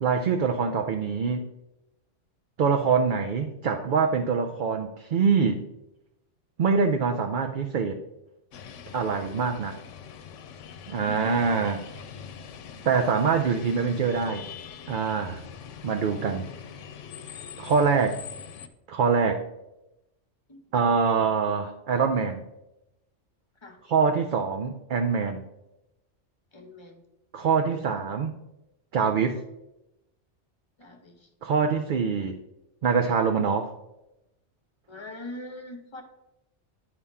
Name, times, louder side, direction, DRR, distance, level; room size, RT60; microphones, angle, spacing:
voice 1, 0.0-1.5 2.6-5.6 6.6-8.0 8.9-9.8 10.9-11.8 12.8-14.4 14.9-15.4 15.8-16.5 17.6-18.2 18.9-19.4 20.7-22.4 23.8-25.4 27.3-28.3 28.9-29.4 31.4-32.4 32.8-33.7, right 5 dB, 55° right, 5 dB, 0.6 m, -24 dB
sound 1, 8.5-18.7, left 7 dB, 85° left, 1.0 m, -43 dB
voice 2, 11.0-11.5 20.5-20.6 23.6-23.8 26.5-27.0 30.8-31.3 34.9-36.0, left 2 dB, 25° left, 4 dB, 1.0 m, -42 dB
9.7 x 3.6 x 5.5 m, 0.92 s
omnidirectional pair, 1.2 m